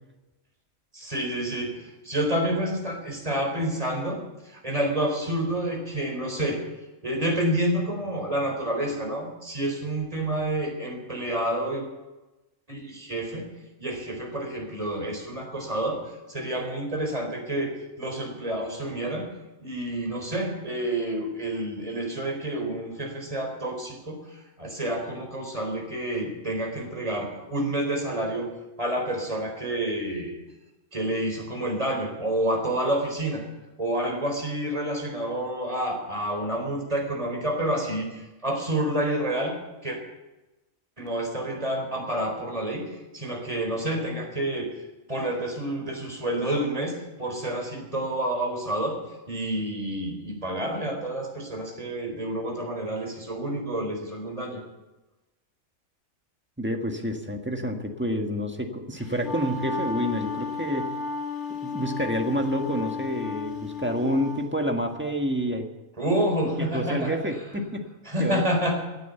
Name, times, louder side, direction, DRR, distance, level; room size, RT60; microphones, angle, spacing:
voice 1, 0.9-4.2 4.5-6.6 7.0-11.8 12.7-13.4 13.8-16.0 16.3-19.3 19.6-28.5 28.8-30.4 30.9-33.4 33.8-39.6 39.8-40.0 41.0-42.9 43.1-44.7 45.1-49.0 49.3-54.6 66.0-67.2 68.1-68.8, right 1 dB, 25° right, 1 dB, 4.2 m, -29 dB
voice 2, 56.6-60.9 61.6-65.7 66.6-67.9 68.2-68.4, equal, 10° right, 3 dB, 1.5 m, -28 dB
Wind instrument woodwind instrument, 59.0-64.5, left 5 dB, 55° left, 2.5 m, -33 dB
16.5 x 9.5 x 8.1 m, 1.1 s
omnidirectional pair, 1.4 m